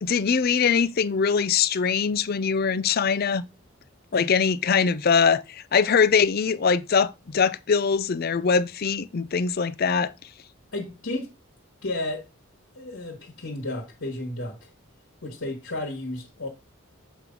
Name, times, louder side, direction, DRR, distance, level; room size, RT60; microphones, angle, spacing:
voice 1, 0.0-3.4 4.1-10.1, left 6 dB, 45° left, 0.5 m, -22 dB
voice 2, 10.7-11.3 11.8-12.2 12.7-14.7 15.2-16.5, left 2 dB, 70° left, 1.5 m, -32 dB
7.4 x 3.0 x 5.2 m
head